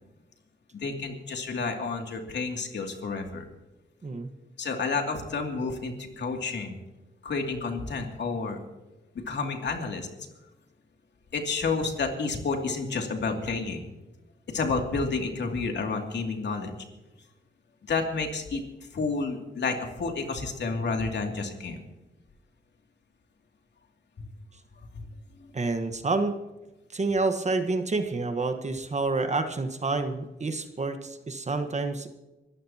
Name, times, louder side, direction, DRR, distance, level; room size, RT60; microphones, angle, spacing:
voice 1, 0.7-3.4 4.6-6.8 7.2-8.6 9.3-10.1 11.3-13.9 14.5-16.7 17.9-18.6 18.9-21.8 24.2-24.3 24.9-25.1 25.4-25.5, left 4 dB, 70° left, 3 dB, 2.7 m, -30 dB
voice 2, 25.5-26.4 26.9-32.1, right 3 dB, 40° right, 7 dB, 1.4 m, -28 dB
25.5 x 14.0 x 2.9 m, 1.1 s
cardioid pair, 70°, 19 cm